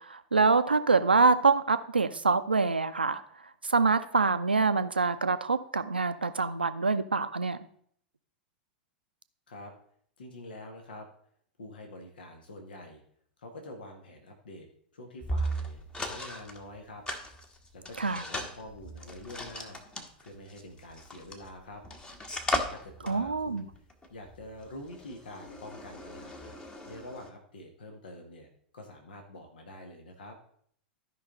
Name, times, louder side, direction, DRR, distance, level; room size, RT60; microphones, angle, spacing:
voice 1, 0.0-3.2 3.6-7.6 18.0-18.2 23.0-23.6, right 4 dB, 90° right, 11 dB, 0.6 m, -25 dB
voice 2, 10.2-11.1 11.6-13.0 13.4-14.7 14.9-17.0 17.7-21.8 22.7-23.7 24.1-26.5 26.8-30.3, left 1 dB, 70° left, 3 dB, 1.7 m, -46 dB
sound 1, 15.2-16.6 17.1-21.5 21.8-27.3, equal, 15° left, 1.4 m, -37 dB
13.0 x 5.5 x 3.9 m, 0.62 s
figure-of-eight pair, 95°, 5 cm